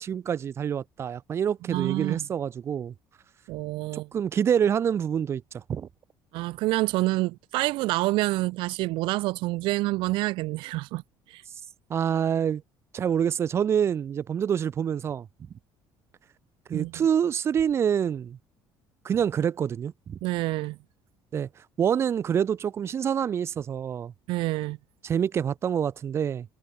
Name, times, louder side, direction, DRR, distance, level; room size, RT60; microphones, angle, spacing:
voice 1, 0.0-2.9 3.9-5.9 11.9-12.6 12.9-15.3 16.7-18.4 19.0-20.2 21.3-21.5 21.8-24.1 25.0-26.5, right 8 dB, 30° right, 7.5 m, -26 dB
voice 2, 1.7-2.2 3.5-4.1 6.3-11.0 11.3-11.4 16.7-16.9 20.2-20.8 24.3-24.8, right 20 dB, 70° right, 7.1 m, -27 dB
cardioid pair, 175°, 9 cm